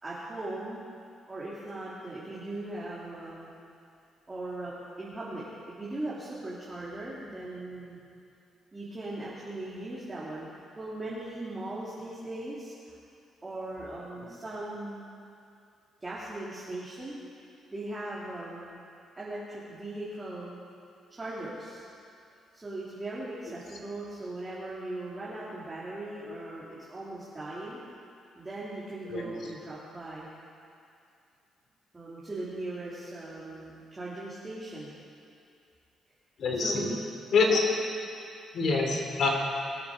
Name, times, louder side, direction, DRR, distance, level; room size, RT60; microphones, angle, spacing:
voice 1, 0.0-0.8 1.3-3.5 4.3-5.4 5.8-8.0 8.7-10.5 10.7-12.9 13.4-15.0 16.0-17.2 17.7-18.8 19.2-20.6 21.1-21.8 22.5-27.8 28.4-30.3 31.9-35.0 36.5-36.9 37.4-37.6, right 2 dB, 20° right, -8 dB, 3.3 m, -39 dB
voice 2, 36.4-36.9 37.3-37.6 38.5-39.3, left 4 dB, 60° left, 0 dB, 3.2 m, -26 dB
23.0 x 8.4 x 5.0 m, 2.5 s
cardioid pair, 90°, 0 cm